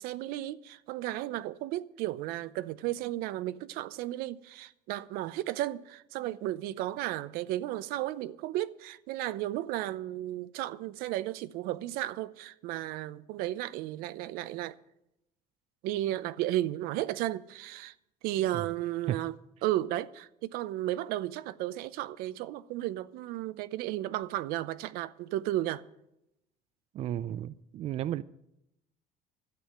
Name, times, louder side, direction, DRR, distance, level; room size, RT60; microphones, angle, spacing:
voice 1, 0.0-14.8 15.8-17.9 18.2-19.3 19.6-25.8, right 14 dB, 85° right, 0.7 m, -34 dB
voice 2, 26.9-28.2, right 12 dB, 45° right, 0.4 m, -33 dB
13.0 x 8.5 x 8.9 m
cardioid pair, 155°, 15 cm